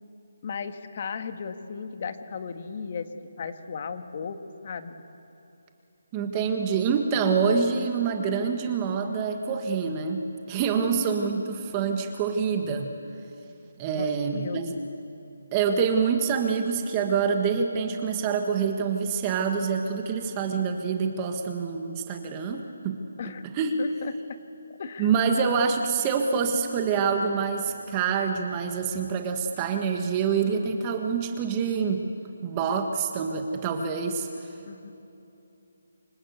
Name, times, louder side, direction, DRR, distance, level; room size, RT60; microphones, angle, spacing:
voice 1, 0.4-3.1 3.4-4.4 4.6-5.0 10.8-11.0 13.9-14.6 23.2-23.5 23.8-24.1 24.8-25.1 34.7-34.9, left 6 dB, 40° left, 8 dB, 1.7 m, -35 dB
voice 2, 6.1-12.9 13.8-14.7 15.5-23.0 23.5-23.8 25.0-32.0 32.4-34.5, right 6 dB, 20° right, 4 dB, 1.5 m, -26 dB
28.0 x 25.5 x 8.1 m, 2.8 s
figure-of-eight pair, 165°, 0 cm